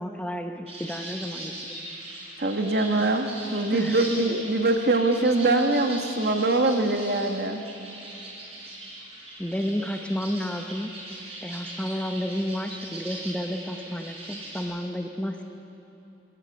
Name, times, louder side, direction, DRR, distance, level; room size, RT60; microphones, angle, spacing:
voice 1, 0.0-1.7 3.7-4.0 9.4-10.9 11.4-15.4, equal, 5° left, 5 dB, 0.8 m, -31 dB
sound 1, 0.7-14.6, right 1 dB, 30° right, 4.6 m, -40 dB
voice 2, 2.4-7.6, right 2 dB, 55° right, 5 dB, 1.3 m, -23 dB
21.0 x 16.5 x 7.7 m, 2.8 s
head